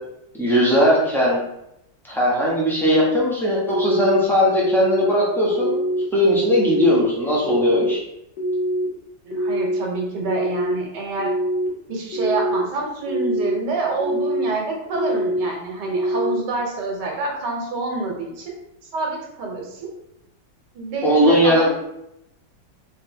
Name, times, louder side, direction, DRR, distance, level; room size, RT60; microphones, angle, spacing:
voice 1, 0.4-1.4 2.1-8.0 21.0-21.7, equal, ahead, -6 dB, 0.6 m, -19 dB
sound 1, 3.7-4.2 4.6-5.1 5.6-6.0 6.5-7.0 7.4-7.9 8.4-8.9 9.3-9.8 10.2-10.7 11.2-11.7 12.1-12.6 13.1-13.5 14.0-14.5 14.9-15.4 15.9-16.4, right 1 dB, 65° left, 1.4 m, -23 dB
voice 2, 9.2-11.3 11.9-18.5 18.9-19.9 20.7-21.7, right 3 dB, 65° right, 0 dB, 1.5 m, -27 dB
3.4 x 2.6 x 4.3 m, 0.83 s
omnidirectional pair, 2.0 m